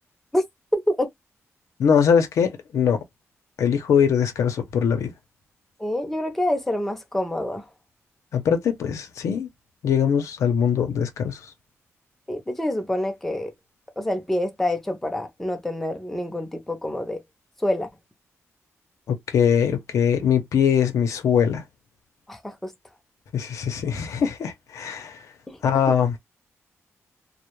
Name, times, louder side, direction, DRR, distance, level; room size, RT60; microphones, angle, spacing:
voice 1, 0.7-1.1 5.8-7.7 12.3-13.5 14.0-17.2 17.6-17.9 22.3-22.7 25.5-25.6, left 1 dB, 5° left, 0.5 m, -26 dB
voice 2, 1.8-3.0 3.6-5.1 8.3-9.5 9.8-11.4 19.1-21.6 23.3-25.2 25.6-26.1, left 7 dB, 85° left, 0.6 m, -22 dB
2.1 x 2.0 x 3.0 m
wide cardioid pair, 160°, 5 cm